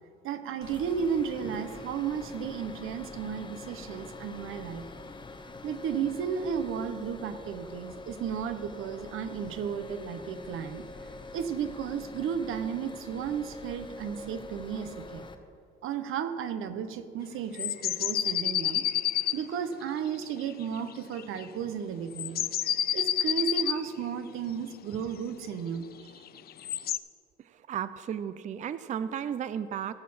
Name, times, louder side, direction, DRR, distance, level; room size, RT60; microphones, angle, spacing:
voice 1, 0.2-4.9 5.6-10.8 11.3-15.2 15.8-22.5 22.9-26.2, right 7 dB, 80° right, 10 dB, 0.8 m, -34 dB
sound 1, 0.6-15.4, left 2 dB, 25° left, 0.8 m, -44 dB
sound 2, 17.5-19.4 20.5-20.9 21.2-21.4 22.1-23.8 26.3-27.0, left 10 dB, 50° left, 0.4 m, -29 dB
voice 2, 27.4-29.9, right 9 dB, 35° right, 14 dB, 0.4 m, -34 dB
17.0 x 6.6 x 5.6 m, 2.4 s
cardioid pair, 120°, 21 cm